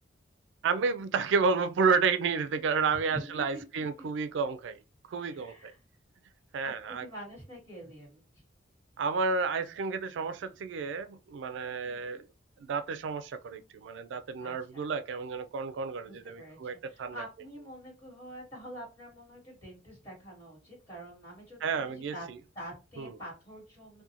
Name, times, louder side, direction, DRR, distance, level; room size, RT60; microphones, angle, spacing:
voice 1, 0.6-4.8 5.1-5.7 6.5-7.1 9.0-12.2 12.6-17.2 21.6-22.4 23.0-23.1, right 5 dB, 75° right, 0.3 m, -31 dB
voice 2, 3.1-3.7 4.0-4.1 5.1-5.8 6.6-8.2 11.8-12.2 14.4-14.9 16.1-16.6 16.8-22.3 22.5-24.0, right 1 dB, 30° left, 1.4 m, -46 dB
2.5 x 2.2 x 2.8 m
head